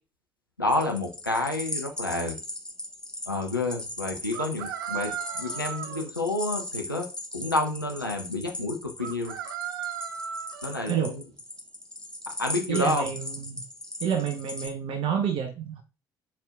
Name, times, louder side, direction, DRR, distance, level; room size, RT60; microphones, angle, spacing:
voice 1, 0.6-2.4 3.3-7.1 7.3-9.3 10.6-11.2 12.4-13.1, left 2 dB, 90° left, 2 dB, 0.9 m, -29 dB
sound 1, 0.7-14.7, left 1 dB, 5° left, 1.5 m, -38 dB
sound 2, 0.7-0.9 4.3-6.1 9.0-10.8, right 9 dB, 75° right, 0.5 m, -36 dB
voice 2, 12.7-13.6 14.0-15.8, right 8 dB, 50° right, 5 dB, 0.8 m, -29 dB
10.5 x 4.4 x 2.5 m, 0.32 s
figure-of-eight pair, 50°, 11 cm